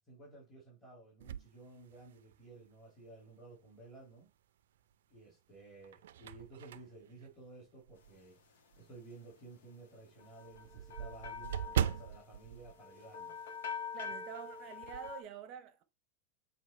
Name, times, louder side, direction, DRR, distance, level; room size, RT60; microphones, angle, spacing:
voice 1, 0.1-4.3 5.1-13.4, right 2 dB, 10° left, 2.8 m, -54 dB
sound 1, 1.2-2.5 3.1-3.2 4.6-5.2 5.6-8.3 8.7-8.8 9.2-9.3 9.6-9.7 9.9-13.7 14.0-14.2 14.5-15.1, right 10 dB, 85° right, 0.4 m, -40 dB
sound 2, 10.2-15.2, left 6 dB, 90° left, 1.3 m, -45 dB
voice 2, 13.9-15.8, right 9 dB, 30° right, 0.8 m, -47 dB
7.3 x 3.1 x 4.4 m
supercardioid pair, 175°, 0 cm